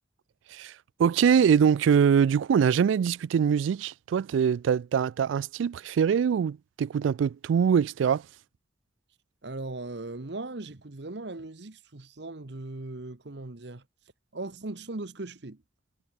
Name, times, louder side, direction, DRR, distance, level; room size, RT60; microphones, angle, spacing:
voice 1, 1.0-8.2, right 7 dB, 80° right, 0.3 m, -23 dB
voice 2, 9.4-13.9 14.3-15.6, right 2 dB, 65° right, 1.2 m, -38 dB
head